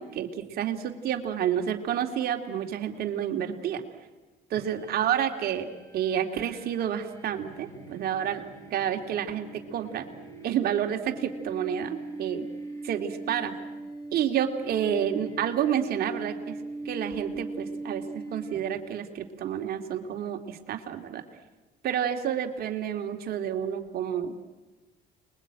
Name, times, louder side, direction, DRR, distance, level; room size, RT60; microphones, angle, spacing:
voice 1, 0.0-3.8 4.5-8.4 8.7-10.1 10.4-12.5 12.8-13.5 14.1-16.5 16.8-21.2 21.8-24.4, right 9 dB, 65° right, 4 dB, 2.7 m, -29 dB
sound 1, 4.6-19.0, right 2 dB, 20° left, 5.0 m, -41 dB
29.0 x 21.5 x 9.0 m, 1.2 s
cardioid pair, 110°, 17 cm